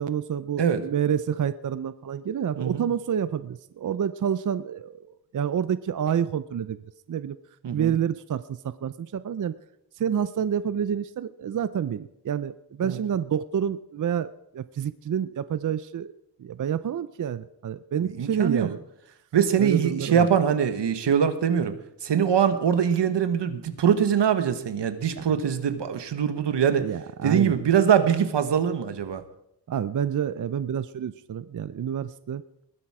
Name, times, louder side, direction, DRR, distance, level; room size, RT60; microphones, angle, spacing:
voice 1, 0.0-6.8 7.1-7.4 7.7-9.5 10.0-16.1 16.4-18.8 19.6-20.3 25.2-25.3 26.8-27.6 29.7-32.4, right 8 dB, 50° right, 14 dB, 0.5 m, -28 dB
voice 2, 7.6-7.9 12.8-13.0 18.0-18.7 19.3-21.7 22.0-26.9 27.2-29.2, right 8 dB, 85° right, 10 dB, 1.4 m, -23 dB
20.5 x 10.0 x 4.8 m, 0.79 s
wide cardioid pair, 125°, 41 cm